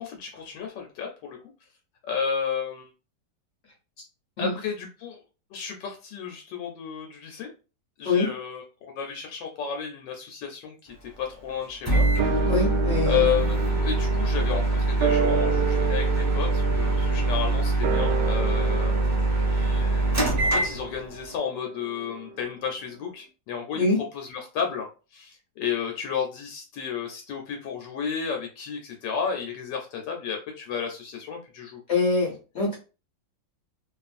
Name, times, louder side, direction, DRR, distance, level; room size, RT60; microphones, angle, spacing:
voice 1, 0.0-1.4 2.0-2.9 4.4-5.2 5.5-7.5 8.0-12.4 13.0-18.9 19.5-23.8 24.1-31.8, left 7 dB, 80° left, 2 dB, 1.2 m, -32 dB
Microwave oven, 11.9-21.2, right 2 dB, 15° right, 0.7 m, -24 dB
sound 1, 12.2-22.8 23.1-23.2, right 6 dB, 70° right, 1.0 m, -32 dB
voice 2, 12.5-13.3 23.7-24.0 31.9-32.8, left 3 dB, 55° left, -3 dB, 0.9 m, -24 dB
2.8 x 2.4 x 2.4 m, 0.33 s
omnidirectional pair, 2.0 m